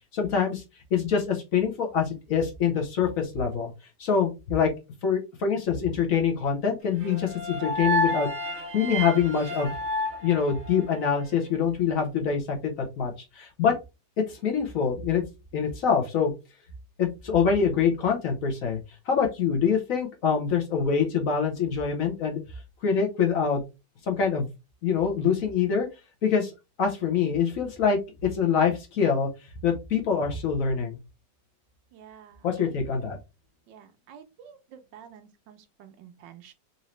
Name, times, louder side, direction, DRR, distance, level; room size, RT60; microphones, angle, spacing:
voice 1, 0.1-0.6 0.9-3.7 4.0-4.7 5.0-8.3 8.7-9.7 10.2-13.8 14.3-15.2 15.5-16.3 17.0-18.8 19.1-22.4 22.8-23.6 24.1-24.5 24.8-25.9 26.2-26.5 26.8-29.3 29.6-31.0 32.4-33.2, left 6 dB, 60° left, 2 dB, 1.1 m, -25 dB
sound 1, 7.0-11.2, left 1 dB, 55° right, 0.8 m, -30 dB
voice 2, 31.9-32.8 33.7-36.5, right 8 dB, 80° right, 8 dB, 1.4 m, -50 dB
4.0 x 2.7 x 3.1 m, 0.26 s
omnidirectional pair, 2.0 m